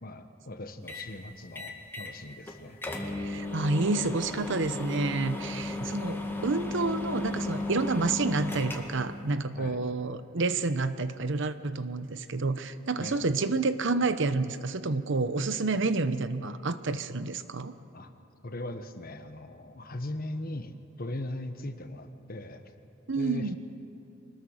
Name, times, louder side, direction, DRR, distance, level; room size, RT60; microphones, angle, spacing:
voice 1, 0.0-2.8 5.8-5.9 9.6-9.8 13.0-13.3 17.9-18.1 18.4-22.6 23.1-23.6, left 1 dB, 45° left, 8 dB, 1.3 m, -39 dB
sound 1, 0.9-1.1 1.5-2.2 2.5-2.6 2.8-9.1, left 2 dB, 10° left, 2.1 m, -35 dB
voice 2, 3.2-17.7 23.1-23.6, right 3 dB, 65° right, 12 dB, 0.9 m, -29 dB
24.5 x 20.5 x 6.5 m, 2.8 s
head